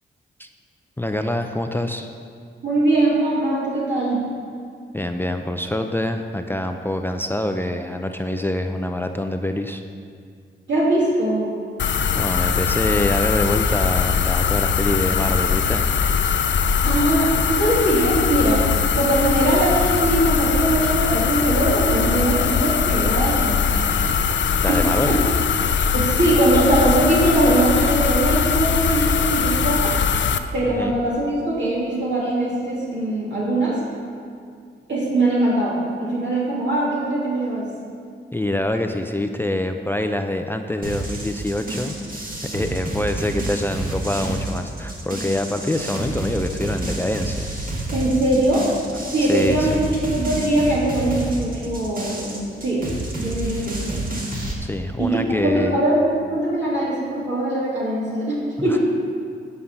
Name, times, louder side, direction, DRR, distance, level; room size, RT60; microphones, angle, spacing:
voice 1, 1.0-2.1 4.9-9.8 12.2-15.8 24.6-25.2 30.6-31.0 38.3-42.0 42.5-47.5 49.3-50.0 54.6-55.7 58.7-58.8, left 1 dB, 10° left, 6 dB, 0.5 m, -25 dB
voice 2, 2.6-4.2 10.7-11.5 16.8-18.7 18.9-24.1 24.7-25.2 25.9-30.0 30.5-33.8 34.9-37.7 47.9-48.7 49.1-52.8 53.2-54.0 55.0-58.8, right 1 dB, 60° right, -7 dB, 2.7 m, -21 dB
sound 1, 11.8-30.4, left 6 dB, 60° left, 0.6 m, -21 dB
sound 2, 40.8-54.5, right 1 dB, 40° right, 1.8 m, -29 dB
9.8 x 5.5 x 7.1 m, 2.2 s
cardioid pair, 80°, 21 cm